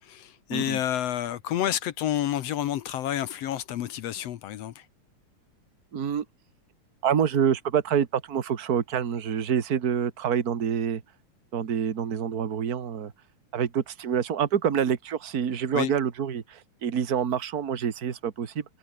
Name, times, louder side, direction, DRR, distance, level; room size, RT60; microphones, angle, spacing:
voice 1, 0.0-4.9 15.7-15.9, left 11 dB, 65° left, 1.9 m, -29 dB
voice 2, 5.9-6.3 7.0-11.0 11.5-13.1 13.5-18.6, right 8 dB, 40° right, 1.7 m, -27 dB
omnidirectional pair, 3.4 m